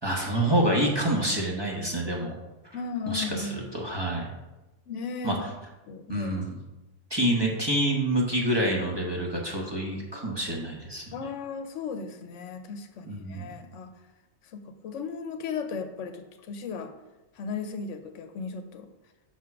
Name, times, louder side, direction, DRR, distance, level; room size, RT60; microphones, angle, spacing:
voice 1, 0.0-2.4 3.1-4.3 5.2-5.4 6.1-6.5 7.1-11.0 13.1-13.5, right 1 dB, 20° right, -2 dB, 1.0 m, -27 dB
voice 2, 2.7-3.7 4.9-5.4 5.9-6.5 11.1-13.9 14.5-16.9 17.4-18.9, left 5 dB, 75° left, 7 dB, 1.0 m, -36 dB
6.1 x 3.6 x 5.8 m, 1.1 s
omnidirectional pair, 1.3 m